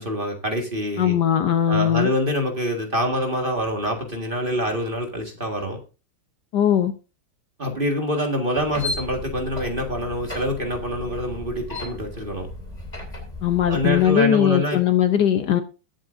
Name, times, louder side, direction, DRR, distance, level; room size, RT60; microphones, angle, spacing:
voice 1, 0.0-1.2 1.7-5.8 7.6-12.5 13.7-14.8, equal, 25° right, 1.7 m, -25 dB
voice 2, 1.0-2.1 6.5-6.9 13.4-15.6, left 10 dB, 65° left, 1.3 m, -19 dB
sound 1, 8.6-14.1, left 2 dB, 20° left, 3.2 m, -35 dB
21.5 x 7.5 x 2.6 m
omnidirectional pair, 2.2 m